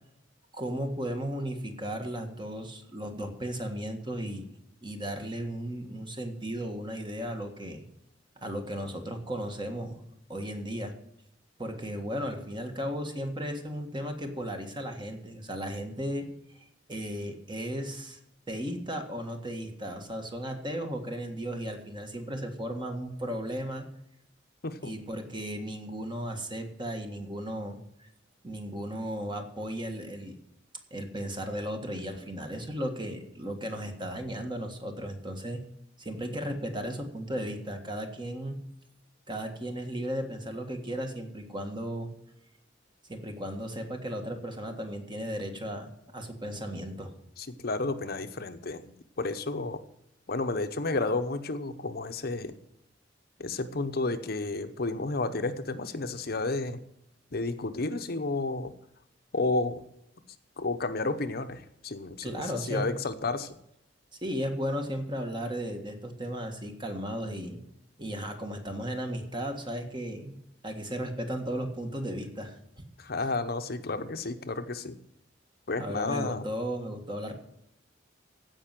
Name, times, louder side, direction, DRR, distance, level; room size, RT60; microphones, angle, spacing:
voice 1, 0.5-4.4 4.8-7.8 8.4-10.0 10.3-10.9 11.6-18.2 18.5-23.8 24.8-28.1 28.4-30.4 30.9-35.6 36.0-38.6 39.3-42.1 43.1-47.1 62.2-62.9 64.2-67.6 68.0-70.4 70.6-72.9 75.8-77.3, equal, 25° right, 5 dB, 1.6 m, -35 dB
voice 2, 47.4-49.8 50.3-52.5 53.4-56.8 57.3-58.7 59.3-59.8 60.6-63.6 73.0-75.0 75.7-76.5, left 3 dB, 55° left, 9 dB, 0.8 m, -31 dB
15.5 x 5.5 x 7.5 m, 0.80 s
head